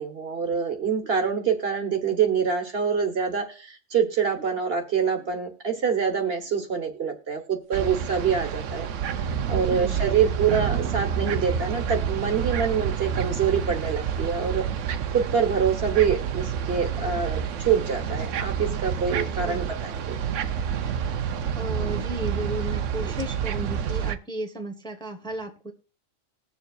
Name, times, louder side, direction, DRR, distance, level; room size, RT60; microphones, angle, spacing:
voice 1, 0.0-14.6 15.1-20.1 23.0-23.1, right 6 dB, 50° right, 5 dB, 1.3 m, -25 dB
sound 1, 7.7-24.2, right 7 dB, 70° right, 1.0 m, -28 dB
voice 2, 21.5-25.7, right 1 dB, 5° left, 3 dB, 1.1 m, -34 dB
20.5 x 7.0 x 2.4 m, 0.36 s
omnidirectional pair, 1.4 m